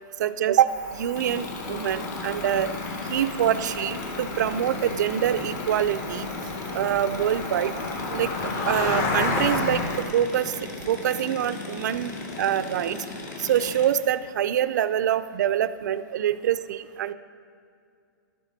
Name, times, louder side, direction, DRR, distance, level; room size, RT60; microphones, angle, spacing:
voice 1, 0.2-2.7 3.1-6.3 6.7-7.7 8.1-10.5 10.9-13.0 13.4-17.1, right 10 dB, 60° right, 13 dB, 0.4 m, -25 dB
Cricket, 0.7-10.0, left 3 dB, 25° left, 1.0 m, -32 dB
sound 1, 1.1-13.9, left 3 dB, 55° left, 2.1 m, -37 dB
12.0 x 8.0 x 4.0 m, 2.3 s
hypercardioid pair, 160°, 11 cm